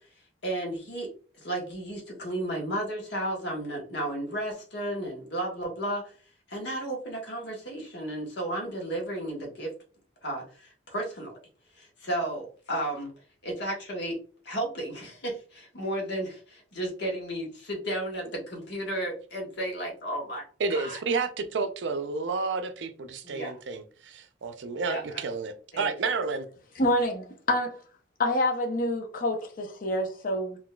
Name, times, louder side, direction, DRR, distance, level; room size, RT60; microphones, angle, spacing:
voice 1, 0.4-1.1 1.4-6.1 6.5-9.7 10.2-11.3 11.8-13.1 13.4-14.2 14.4-20.4 20.7-21.0 23.2-23.5 24.9-25.0 25.7-25.9, right 1 dB, 60° left, 1.3 m, -33 dB
voice 2, 20.6-26.5, right 4 dB, 70° right, 0.5 m, -31 dB
voice 3, 26.8-27.8 28.2-30.6, left 1 dB, 45° left, 0.7 m, -27 dB
3.7 x 2.6 x 2.2 m
head